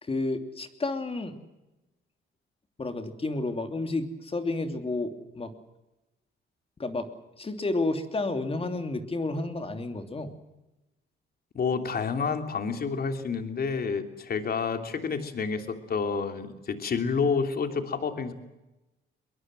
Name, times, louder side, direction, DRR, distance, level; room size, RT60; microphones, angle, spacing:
voice 1, 0.0-1.4 2.8-5.5 6.8-7.1 7.4-10.3, left 2 dB, 30° left, 7 dB, 3.0 m, -31 dB
voice 2, 11.5-18.3, left 5 dB, 50° left, 6 dB, 3.0 m, -29 dB
22.5 x 22.0 x 7.7 m, 1.0 s
cardioid pair, 90°, 20 cm